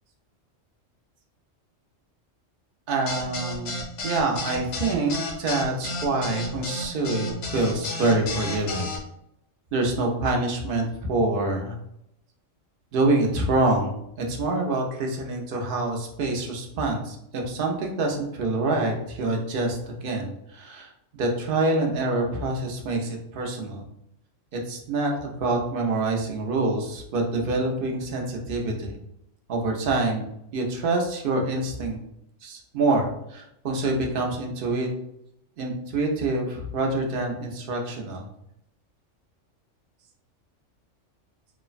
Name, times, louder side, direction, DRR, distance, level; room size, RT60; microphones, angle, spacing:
voice 1, 2.9-8.9 9.7-11.8 12.9-23.8 24.5-29.0 29.5-32.0 32.4-34.9 35.6-38.3, right 2 dB, 60° right, 1 dB, 0.6 m, -26 dB
sound 1, 3.1-9.0, left 2 dB, 70° left, 0.9 m, -32 dB
3.2 x 2.0 x 2.3 m, 0.78 s
omnidirectional pair, 1.3 m